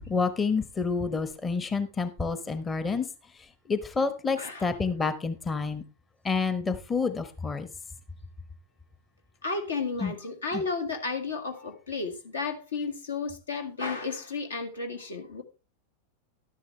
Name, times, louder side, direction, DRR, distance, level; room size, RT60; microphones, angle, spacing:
voice 1, 0.0-3.1 3.7-5.8 6.2-7.7 10.0-10.1 10.5-10.6, left 4 dB, 15° left, 0.9 m, -28 dB
voice 2, 4.4-4.7 7.0-7.1 9.4-15.4, left 4 dB, 70° left, 1.9 m, -33 dB
12.5 x 10.5 x 3.2 m
figure-of-eight pair, 90°, 0 cm